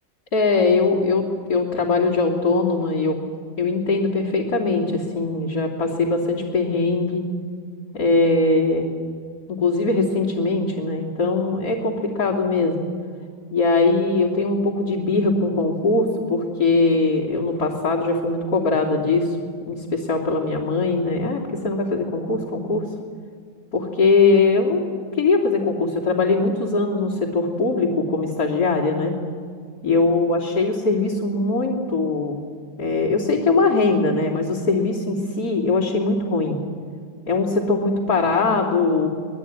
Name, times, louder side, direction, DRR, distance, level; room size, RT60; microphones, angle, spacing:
voice 1, 0.3-3.2 3.6-7.2 7.9-8.9 9.6-12.8 13.5-19.4 19.7-22.8 23.7-24.8 25.2-29.1 29.8-32.4 32.8-36.6 37.3-39.1, left 3 dB, 55° left, -6 dB, 3.5 m, -21 dB
24.5 x 20.5 x 9.6 m, 2.1 s
omnidirectional pair, 2.1 m